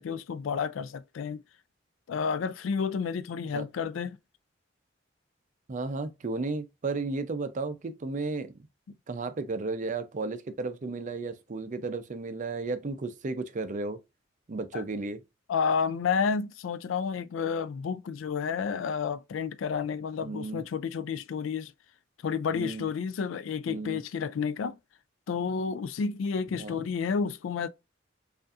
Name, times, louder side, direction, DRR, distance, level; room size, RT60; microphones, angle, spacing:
voice 1, 0.0-1.4 2.1-4.2 14.7-14.8 15.5-21.7 22.2-24.8 25.3-27.7, left 6 dB, 85° left, 0.4 m, -30 dB
voice 2, 5.7-8.7 9.1-14.0 14.5-15.2 20.2-20.6 22.5-22.9 23.7-24.0 26.6-26.8, right 3 dB, 40° right, 0.5 m, -34 dB
5.2 x 2.5 x 2.4 m
head